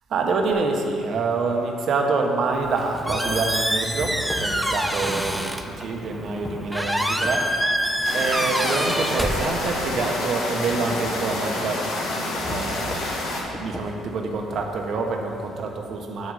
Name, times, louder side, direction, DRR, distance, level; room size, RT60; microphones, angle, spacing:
voice 1, 0.1-7.7 8.1-11.9 12.4-16.3, right 4 dB, 60° right, 2 dB, 1.2 m, -26 dB
sound 1, 0.5-0.6 1.7-1.8 2.3-7.4 7.9-9.1 9.5-15.7, left 1 dB, 25° left, 1.7 m, -39 dB
Squeak, 2.5-10.0, equal, 5° right, 0.7 m, -26 dB
sound 2, 8.0-13.4, left 2 dB, 85° left, 1.8 m, -28 dB
8.7 x 8.3 x 4.9 m, 2.5 s
cardioid pair, 95°, 0 cm